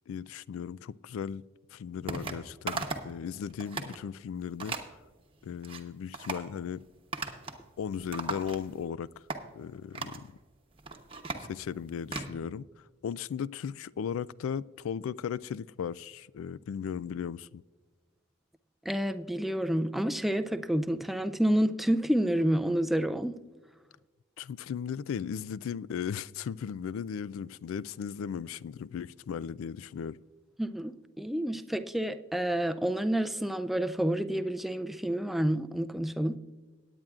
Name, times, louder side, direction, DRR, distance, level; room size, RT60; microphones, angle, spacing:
voice 1, 0.1-1.4 1.7-4.8 5.4-6.9 7.8-9.2 9.6-10.3 11.5-12.7 13.0-17.6 24.4-30.2, left 7 dB, 85° left, 0.3 m, -36 dB
sound 1, 2.1-2.4 2.7-3.1 3.5-4.0 4.6-4.9 5.4-5.8 6.1-6.5 7.1-7.6 7.9-8.9 9.3-9.4 9.9-10.2 10.7-12.3, right 3 dB, 25° right, 0.9 m, -37 dB
voice 2, 18.9-23.4 30.6-36.4, right 1 dB, ahead, 0.3 m, -29 dB
19.5 x 9.0 x 2.4 m
head